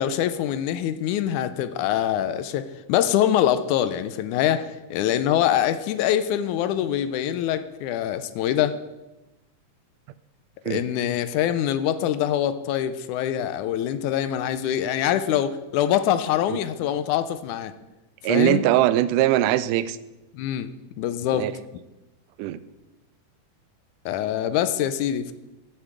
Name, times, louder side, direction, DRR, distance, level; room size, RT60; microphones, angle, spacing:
voice 1, 0.0-8.8 10.7-17.7 18.3-18.6 20.3-20.7 21.0-21.5 24.1-25.3, left 11 dB, 80° left, 12 dB, 2.0 m, -24 dB
voice 2, 18.2-20.0 21.3-21.5 22.4-22.6, right 13 dB, 90° right, 15 dB, 2.1 m, -21 dB
8.2 x 7.9 x 7.5 m, 1.0 s
omnidirectional pair, 3.6 m